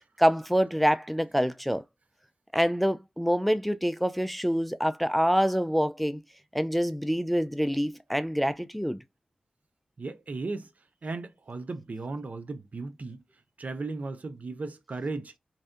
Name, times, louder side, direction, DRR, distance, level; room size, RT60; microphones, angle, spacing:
voice 1, 0.2-1.8 2.5-6.2 6.5-9.0, equal, ahead, 0.3 m, -26 dB
voice 2, 10.0-10.7 11.0-13.2 13.6-15.3, right 3 dB, 60° right, 0.4 m, -36 dB
2.6 x 2.1 x 2.3 m
cardioid pair, 45°, 3 cm